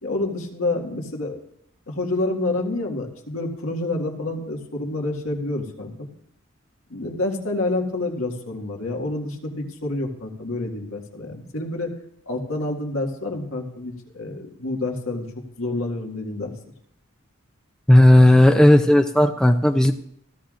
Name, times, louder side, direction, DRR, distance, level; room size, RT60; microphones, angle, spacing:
voice 1, 0.0-1.4 1.9-6.1 6.9-11.9 12.3-15.3 15.6-16.5, left 2 dB, 75° left, 0 dB, 1.9 m, -28 dB
voice 2, 17.9-19.9, left 1 dB, 5° left, 5 dB, 0.4 m, -14 dB
15.5 x 14.0 x 2.5 m, 0.71 s
head